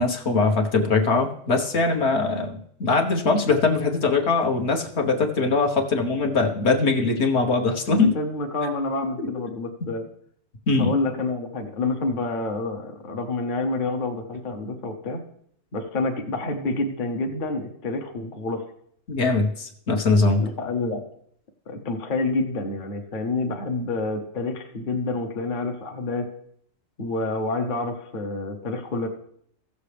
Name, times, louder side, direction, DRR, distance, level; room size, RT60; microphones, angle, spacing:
voice 1, 0.0-8.1 10.7-10.9 19.1-20.4, left 3 dB, 65° left, 2 dB, 1.3 m, -21 dB
voice 2, 7.9-10.0 10.8-15.2 15.7-18.6 20.4-21.0 21.7-26.3 27.0-29.1, left 3 dB, 45° left, 3 dB, 1.0 m, -28 dB
16.0 x 6.9 x 3.3 m, 0.67 s
omnidirectional pair, 1.3 m